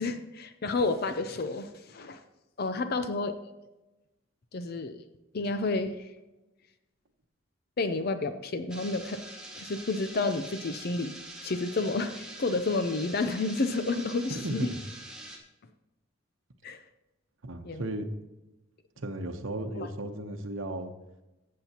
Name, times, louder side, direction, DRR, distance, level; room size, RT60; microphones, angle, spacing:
voice 1, 0.0-2.2 2.6-3.3 4.5-5.0 5.3-6.0 7.8-9.2 9.6-11.1 11.4-14.7 16.6-16.8 17.6-17.9 19.8-19.9, left 3 dB, 50° left, 9 dB, 0.5 m, -30 dB
sound 1, 8.7-15.4, right 1 dB, 5° right, 1.2 m, -45 dB
voice 2, 14.3-14.8 17.4-18.1 19.0-20.9, right 1 dB, 70° right, 6 dB, 1.0 m, -35 dB
15.0 x 7.5 x 2.9 m, 1.0 s
head